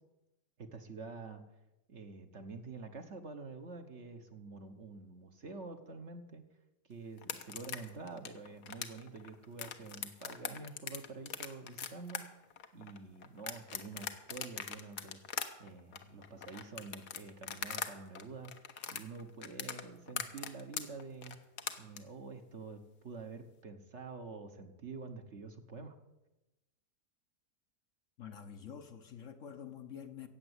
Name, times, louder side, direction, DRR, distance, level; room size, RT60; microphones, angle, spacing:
voice 1, 0.6-1.4 1.9-6.4 6.9-12.2 12.7-15.2 15.6-18.5 18.9-21.4 21.8-26.0, right 4 dB, 50° right, 6 dB, 1.4 m, -47 dB
sound 1, 7.2-17.9 18.1-22.0, left 8 dB, 80° left, 1.6 m, -41 dB
voice 2, 28.2-30.3, left 8 dB, 55° left, 8 dB, 1.2 m, -47 dB
15.0 x 8.8 x 8.1 m, 0.98 s
omnidirectional pair, 1.7 m